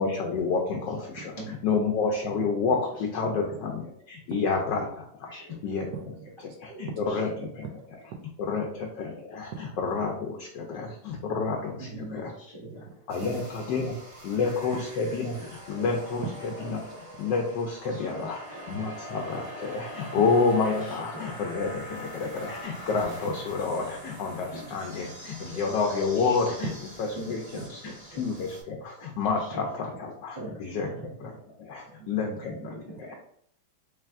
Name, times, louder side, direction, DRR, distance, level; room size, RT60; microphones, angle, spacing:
voice 1, 0.0-1.3 1.6-5.3 5.6-5.9 6.6-7.7 8.4-12.3 13.1-13.9 14.2-16.2 16.7-16.8 17.2-18.4 18.7-26.7 27.3-30.9 31.2-31.3 31.6-32.7 33.0-33.1, left 4 dB, 70° left, 2 dB, 1.1 m, -29 dB
voice 2, 1.4-1.7 2.3-2.4 2.9-3.0 5.3-5.8 7.1-7.2 11.8-13.4 14.3-14.5 15.4-15.5 15.8-15.9 17.8-18.6 19.9-20.0 20.8-21.3 24.2-24.6 25.4-25.6 26.2-26.4 27.2-28.2 29.4-29.6 30.4-32.0 32.2-33.1, right 1 dB, 40° right, -6 dB, 0.3 m, -43 dB
voice 3, 5.9-7.2 7.6-8.2 8.5-8.6 9.5-9.8 14.7-15.2 16.2-17.2 20.1-20.3 25.5-25.6 26.6-26.7 32.0-32.3, right 6 dB, 70° right, 4 dB, 1.1 m, -41 dB
sound 1, 13.1-28.6, equal, 25° right, 0.8 m, -43 dB
3.3 x 3.3 x 3.5 m, 0.67 s
omnidirectional pair, 2.3 m